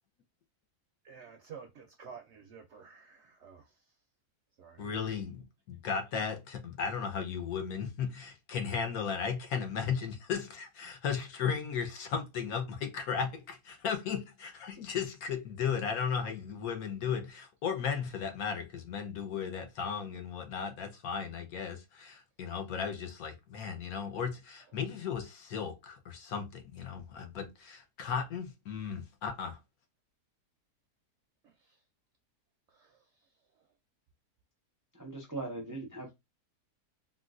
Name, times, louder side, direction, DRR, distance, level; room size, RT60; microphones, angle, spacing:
voice 1, 1.0-3.7 4.6-4.8 32.7-33.0, right 6 dB, 70° right, 0.7 m, -50 dB
voice 2, 4.8-29.6, left 6 dB, 75° left, 1.2 m, -35 dB
voice 3, 34.9-36.1, right 2 dB, 30° right, 0.3 m, -40 dB
3.8 x 2.3 x 2.4 m
omnidirectional pair, 1.6 m